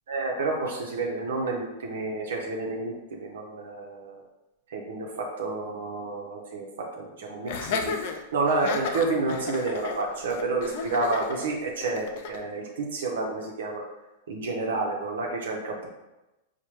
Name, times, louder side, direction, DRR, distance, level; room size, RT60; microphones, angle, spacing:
voice 1, 0.1-4.2 4.7-6.7 7.0-8.0 8.3-13.8 14.3-15.9, right 3 dB, 85° right, 0 dB, 0.6 m, -30 dB
Laughter, 7.5-12.4, left 5 dB, 55° left, 0.4 m, -33 dB
4.7 x 2.1 x 3.0 m, 0.99 s
supercardioid pair, 145°, 0 cm